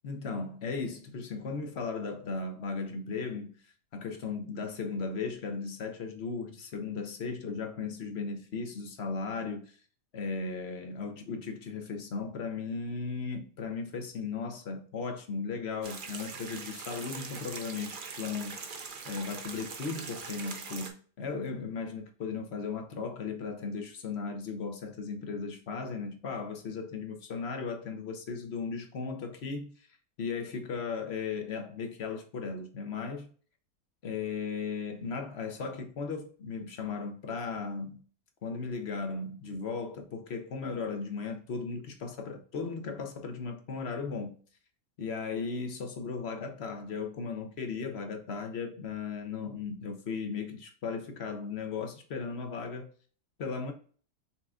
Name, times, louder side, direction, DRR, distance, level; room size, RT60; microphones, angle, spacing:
voice 1, 0.0-9.8 10.1-29.7 30.2-33.3 34.0-38.0 38.4-44.4 45.0-52.9 53.4-53.7, left 4 dB, 50° left, 1.0 m, -36 dB
sound 1, 15.8-20.9, right 5 dB, 50° right, 0.6 m, -42 dB
5.6 x 3.7 x 2.3 m
omnidirectional pair, 1.6 m